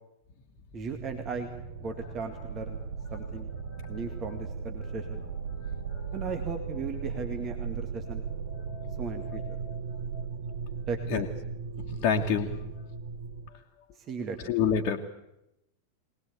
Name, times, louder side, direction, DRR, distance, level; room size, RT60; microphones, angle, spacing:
voice 1, 0.7-1.5 1.8-2.8 3.1-3.5 3.9-5.3 6.1-8.3 9.0-9.6 10.9-11.2 14.0-14.5, right 5 dB, 30° right, 5 dB, 2.1 m, -36 dB
sound 1, 0.9-13.5, right 5 dB, 65° right, 2.1 m, -37 dB
voice 2, 3.6-4.0 4.8-6.2 8.5-9.8 10.1-10.2 11.1-11.3 11.8-12.6 14.4-15.0, left 6 dB, 40° left, -1 dB, 1.8 m, -31 dB
22.5 x 19.5 x 8.4 m, 0.86 s
figure-of-eight pair, 90°, 0 cm